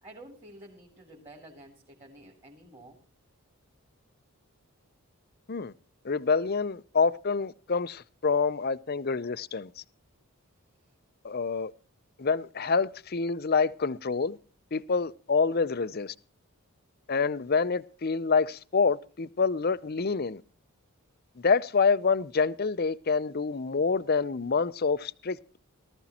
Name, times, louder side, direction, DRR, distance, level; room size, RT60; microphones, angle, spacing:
voice 1, 0.0-3.0, right 1 dB, 25° right, 3.0 m, -50 dB
voice 2, 6.0-9.7 11.2-11.7 12.2-14.4 14.7-16.1 17.1-20.4 21.4-25.6, left 5 dB, 45° left, 0.6 m, -27 dB
18.5 x 13.5 x 2.9 m
head